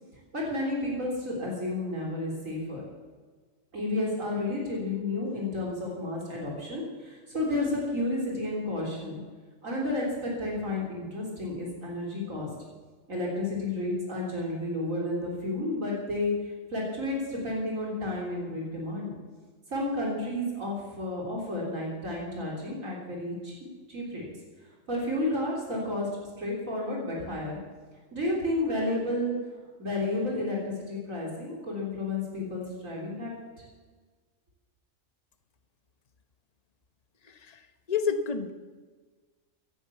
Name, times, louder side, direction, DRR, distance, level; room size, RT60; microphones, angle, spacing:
voice 1, 0.3-2.8 3.7-9.2 9.6-12.5 13.1-16.3 16.7-19.1 19.7-23.5 23.9-24.3 24.9-26.1 26.4-27.6 28.1-29.3 29.8-33.3, left 1 dB, 80° right, -2 dB, 4.1 m, -31 dB
voice 2, 37.3-38.5, left 6 dB, 30° left, 9 dB, 1.1 m, -30 dB
17.0 x 11.0 x 7.1 m, 1.4 s
omnidirectional pair, 1.4 m